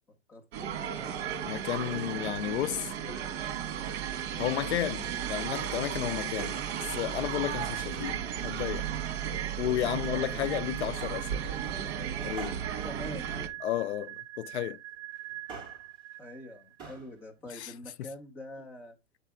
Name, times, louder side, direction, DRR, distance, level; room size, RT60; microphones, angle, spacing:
sound 1, 0.5-13.5, right 8 dB, 55° right, 1.6 m, -35 dB
voice 1, 0.7-1.2 10.1-10.4 12.8-13.5 16.2-19.0, left 1 dB, 5° left, 0.6 m, -45 dB
sound 2, 1.2-16.8, right 14 dB, 85° right, 0.7 m, -43 dB
voice 2, 1.4-2.9 4.4-6.6 6.9-8.9 9.6-11.4 12.2-12.6 13.6-14.8 17.5-17.7 18.0-18.1, left 12 dB, 65° left, 0.5 m, -33 dB
Male speech man speaking, 6.4-7.0 7.9-8.3 9.1-9.9 11.0-11.4 12.4-14.0 15.3-15.9 16.8-17.1 17.4-17.5, right 5 dB, 10° right, 2.0 m, -46 dB
8.0 x 3.3 x 4.7 m
supercardioid pair, 180°, 37 cm